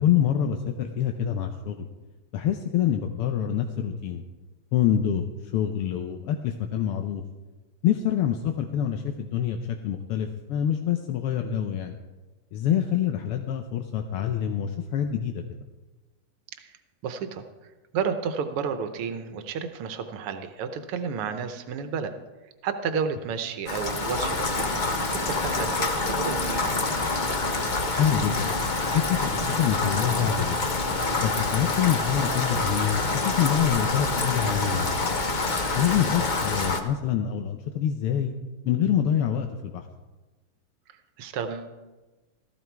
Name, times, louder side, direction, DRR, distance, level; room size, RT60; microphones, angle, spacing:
voice 1, 0.0-1.9 2.3-4.2 4.7-7.2 7.8-12.0 12.5-15.6 28.0-28.5 28.9-30.8 31.2-35.2 35.7-38.3 38.6-39.9, left 9 dB, 85° left, 4 dB, 1.8 m, -26 dB
voice 2, 17.0-22.1 22.6-26.7 41.2-41.7, right 6 dB, 85° right, 8 dB, 1.9 m, -32 dB
Rain, 23.7-36.8, left 3 dB, 35° left, 0.7 m, -27 dB
sound 1, 31.4-36.6, left 5 dB, 50° left, 1.1 m, -40 dB
16.0 x 14.5 x 4.6 m, 1.2 s
omnidirectional pair, 2.4 m